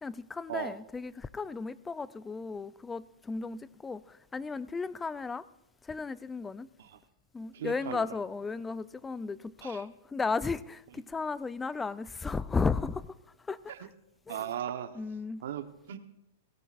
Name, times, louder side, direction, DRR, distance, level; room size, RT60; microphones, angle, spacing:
voice 1, 0.0-5.4 5.8-6.7 7.3-13.1 13.5-13.7 14.3-14.4 15.0-15.4, left 4 dB, 10° left, 0.4 m, -34 dB
voice 2, 7.5-8.1 9.6-9.8 13.7-13.8 14.3-15.0 15.4-16.0, right 10 dB, 70° right, 1.0 m, -37 dB
18.5 x 17.0 x 2.5 m
hypercardioid pair, 145°, 0 cm